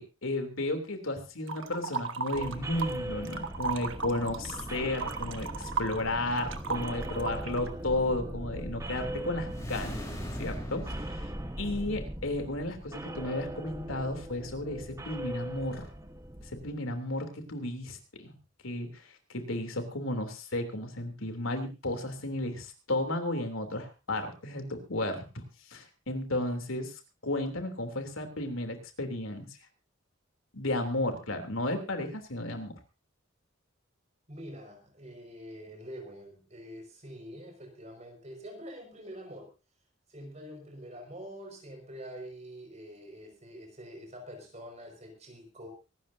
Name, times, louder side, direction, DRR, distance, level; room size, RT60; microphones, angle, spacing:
voice 1, 0.0-10.0 10.4-11.3 11.6-15.9 16.4-18.0 18.2-18.3 18.6-19.1 19.3-25.4 25.7-26.9 27.2-29.5 30.5-32.7, left 1 dB, 80° left, 6 dB, 3.2 m, -33 dB
sound 1, 1.5-3.0 3.3-7.7, right 5 dB, 70° right, 1.4 m, -35 dB
sound 2, 2.3-16.7, right 1 dB, 15° right, 1.3 m, -39 dB
sound 3, 9.5-12.1, equal, 15° left, 4.3 m, -41 dB
voice 2, 34.3-39.5 40.1-45.7, equal, 35° right, 3 dB, 5.7 m, -45 dB
24.5 x 12.5 x 2.8 m, 0.30 s
head